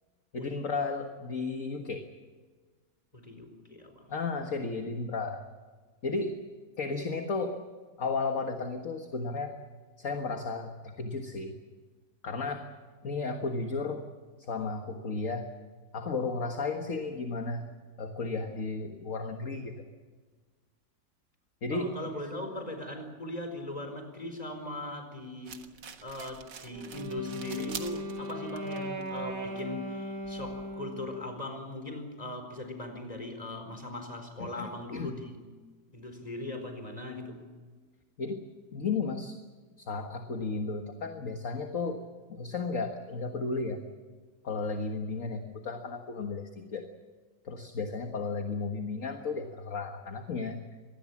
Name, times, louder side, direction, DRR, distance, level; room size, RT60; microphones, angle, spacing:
voice 1, 0.3-2.1 4.1-5.4 6.0-6.4 6.8-7.6 8.0-9.6 10.0-11.5 12.2-12.7 13.0-14.0 14.5-15.5 15.9-17.7 18.0-19.8 21.6-22.4 34.4-35.1 38.2-38.4 38.7-39.4 39.8-42.0 42.3-43.8 44.4-46.9 47.5-50.6, left 4 dB, 50° left, 5 dB, 1.9 m, -34 dB
voice 2, 3.1-4.1 21.7-25.6 26.0-35.4 35.9-37.5, left 2 dB, 20° left, 5 dB, 4.5 m, -39 dB
sound 1, 25.4-30.7, right 6 dB, 80° right, 2.2 m, -47 dB
Wind instrument woodwind instrument, 26.7-31.2, equal, 60° right, 3.5 m, -38 dB
25.5 x 19.5 x 7.3 m, 1.4 s
omnidirectional pair, 1.9 m